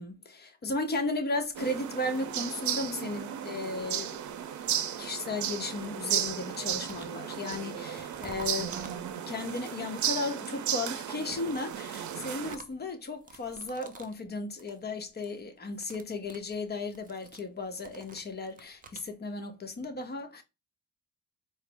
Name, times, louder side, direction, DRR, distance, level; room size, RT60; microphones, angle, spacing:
voice 1, 0.0-4.2 5.0-8.9 9.3-20.4, left 2 dB, 35° left, 0.9 m, -35 dB
sound 1, 1.4-3.0 4.0-5.6 5.8-9.5 10.9-14.2 14.5-14.8 15.1-15.4 15.7-19.1, right 4 dB, 30° right, 0.6 m, -52 dB
sound 2, 1.5-12.6, right 10 dB, 70° right, 0.6 m, -34 dB
4.2 x 2.0 x 3.3 m
cardioid pair, 90°, 30 cm